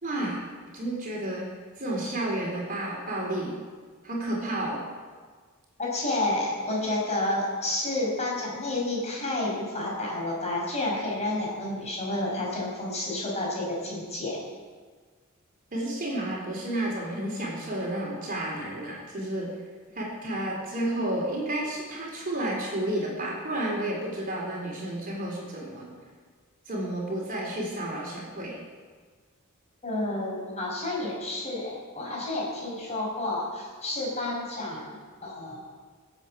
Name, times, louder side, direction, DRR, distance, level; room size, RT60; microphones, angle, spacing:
voice 1, 0.0-0.4 0.7-1.5 1.8-3.5 4.0-4.9 15.7-19.5 19.9-25.9 26.7-28.6, right 1 dB, 40° right, -2 dB, 4.1 m, -31 dB
voice 2, 5.8-14.4 29.8-35.7, left 2 dB, 30° left, -3 dB, 5.6 m, -30 dB
24.5 x 8.2 x 6.5 m, 1.5 s
head